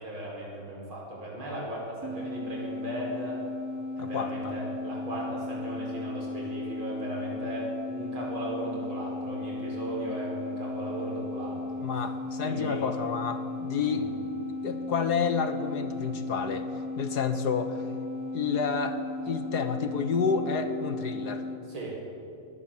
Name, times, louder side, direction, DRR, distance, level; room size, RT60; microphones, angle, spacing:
voice 1, 0.0-3.5 4.0-11.8 12.4-12.8 13.9-14.1 21.6-22.2, right 1 dB, 75° right, -3 dB, 6.1 m, -37 dB
sound 1, 2.0-21.6, left 2 dB, 10° right, 0.9 m, -36 dB
voice 2, 4.0-4.5 11.8-14.0 14.6-16.7 17.0-17.8 18.3-19.0 19.2-21.4, left 6 dB, 55° left, 9 dB, 1.6 m, -29 dB
21.5 x 18.0 x 7.4 m, 2.5 s
omnidirectional pair, 2.2 m